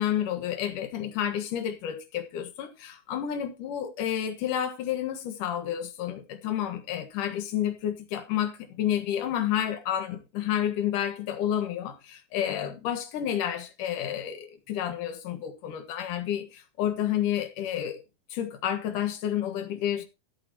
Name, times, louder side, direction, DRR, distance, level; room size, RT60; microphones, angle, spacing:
voice 1, 0.0-18.0 18.3-20.0, left 10 dB, 65° left, 2.7 m, -30 dB
16.5 x 8.2 x 2.9 m
omnidirectional pair, 4.5 m